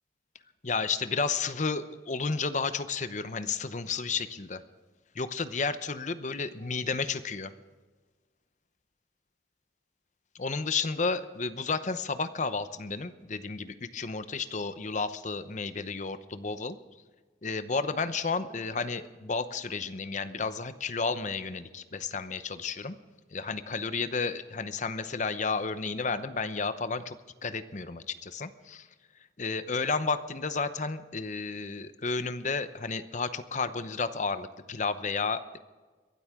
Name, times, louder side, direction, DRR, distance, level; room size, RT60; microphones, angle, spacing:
voice 1, 0.6-4.6 5.1-7.5 10.3-16.8 17.4-23.0 23.3-27.2 27.4-28.9 29.4-35.6, left 4 dB, 40° left, 12 dB, 0.8 m, -32 dB
22.5 x 13.0 x 3.7 m, 1.3 s
head